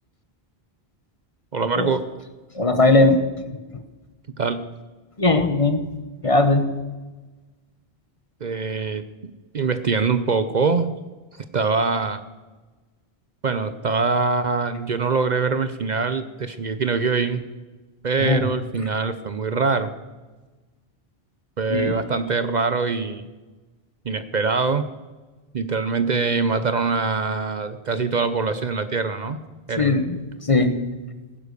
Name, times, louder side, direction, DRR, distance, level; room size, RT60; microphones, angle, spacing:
voice 1, 1.5-2.0 4.4-4.7 8.4-10.9 11.5-12.2 13.4-17.4 18.0-19.9 21.6-23.2 24.1-24.8 25.5-29.4 29.7-30.0, right 4 dB, 50° right, 12 dB, 0.7 m, -23 dB
voice 2, 2.5-3.2 5.2-5.8 6.2-6.7 18.2-18.5 21.7-22.0 29.8-30.2 30.4-30.7, left 2 dB, 35° left, 9 dB, 1.0 m, -18 dB
16.5 x 10.0 x 6.6 m, 1.2 s
omnidirectional pair, 1.1 m